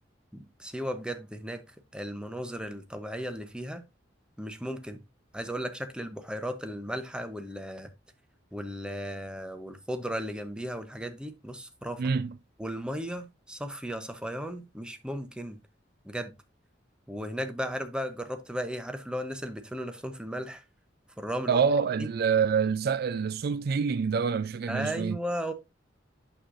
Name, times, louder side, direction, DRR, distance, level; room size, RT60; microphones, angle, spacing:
voice 1, 0.3-1.6 1.9-3.8 4.4-5.0 5.3-7.9 8.5-12.0 12.6-15.6 16.0-16.3 17.1-20.6 21.2-21.6 22.0-22.1 24.7-25.5, equal, 5° right, 0.8 m, -35 dB
voice 2, 12.0-12.3 21.5-25.2, right 6 dB, 55° right, 0.4 m, -26 dB
8.6 x 6.5 x 2.5 m
head